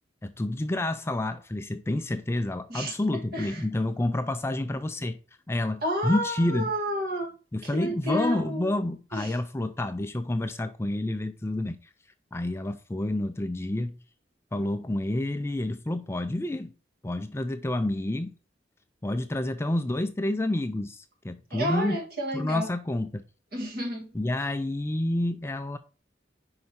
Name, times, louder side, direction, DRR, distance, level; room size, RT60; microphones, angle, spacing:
voice 1, 0.2-5.2 5.5-6.7 7.5-11.8 12.3-13.9 14.5-16.7 17.0-18.3 19.0-22.0 22.3-23.2 24.1-25.8, left 1 dB, 15° left, 0.3 m, -29 dB
voice 2, 5.8-7.3 7.7-8.7 9.1-9.3 21.5-22.7 23.5-24.1, equal, 55° right, 1.8 m, -30 dB
5.3 x 4.8 x 4.1 m
head